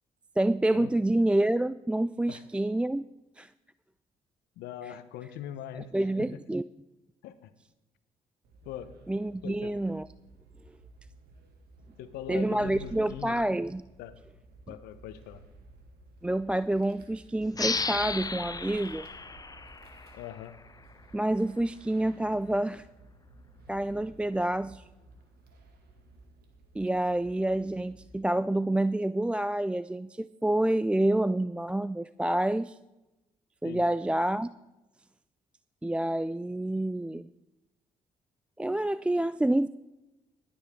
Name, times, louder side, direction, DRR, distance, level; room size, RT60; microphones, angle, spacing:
voice 1, 0.4-3.0 3.4-3.5 5.9-6.6 9.1-10.1 12.3-13.8 16.2-19.1 21.1-22.9 23.7-24.8 26.8-32.8 33.6-34.5 35.8-37.3 38.6-39.7, right 1 dB, 5° right, 15 dB, 0.3 m, -28 dB
voice 2, 4.6-5.9 6.2-6.4 7.2-7.5 8.7-8.9 9.4-9.7 12.0-13.4 14.0-14.2 14.7-15.4 20.1-20.6 33.6-33.8, left 10 dB, 80° left, 12 dB, 0.9 m, -41 dB
sound 1, 8.4-28.2, right 2 dB, 75° right, 2.1 m, -54 dB
sound 2, 17.5-20.8, left 4 dB, 25° left, 0.7 m, -34 dB
20.0 x 8.7 x 3.6 m, 1.0 s
hypercardioid pair, 50°, 16 cm